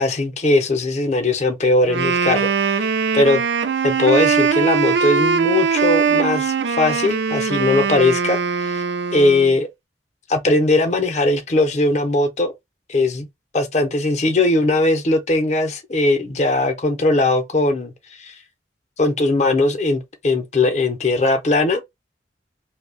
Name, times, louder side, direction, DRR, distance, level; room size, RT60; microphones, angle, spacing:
voice 1, 0.0-2.9 3.1-3.4 3.8-8.8 9.1-9.7 10.3-12.5 12.9-13.3 13.5-17.9 18.2-18.4 19.0-21.8, left 2 dB, 40° left, 0.5 m, -19 dB
Wind instrument woodwind instrument, 1.8-9.6, right 6 dB, 75° right, 0.4 m, -21 dB
2.6 x 2.0 x 3.8 m
head